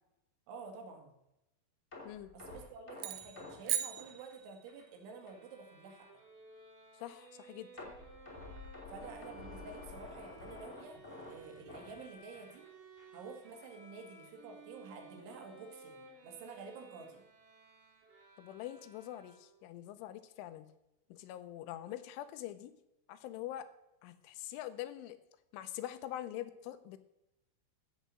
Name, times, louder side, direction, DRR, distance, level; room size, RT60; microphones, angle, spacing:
voice 1, 0.5-1.1 2.3-6.1 8.9-12.6 13.1-17.2, right 4 dB, 75° right, 3 dB, 4.0 m, -50 dB
sound 1, 1.9-4.9 5.3-5.4 5.9-6.0 7.8-12.7 13.0-13.2 13.6-13.7, left 3 dB, 20° left, 2.1 m, -50 dB
sound 2, 2.9-4.9, right 11 dB, 90° right, 2.4 m, -38 dB
Bowed string instrument, 5.2-19.7, right 3 dB, 50° right, 3.9 m, -57 dB
voice 2, 7.0-7.7 18.4-20.7 21.1-22.7 23.1-23.7 24.0-25.2 25.5-27.0, left 13 dB, 85° left, 12 dB, 3.1 m, -44 dB
13.5 x 6.2 x 7.4 m, 0.90 s
omnidirectional pair, 5.7 m